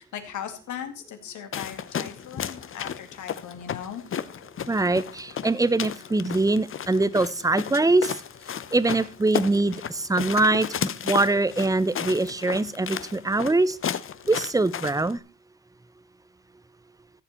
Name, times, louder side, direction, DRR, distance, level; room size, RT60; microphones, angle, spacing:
voice 1, 0.0-4.0, left 9 dB, 75° left, 7 dB, 2.3 m, -38 dB
sound 1, 1.5-15.1, left 8 dB, 45° left, 0.8 m, -34 dB
voice 2, 4.7-8.1 8.7-13.8 14.3-15.2, right 2 dB, 10° right, 17 dB, 0.7 m, -23 dB
14.5 x 7.7 x 4.3 m, 0.36 s
cardioid pair, 90°, 30 cm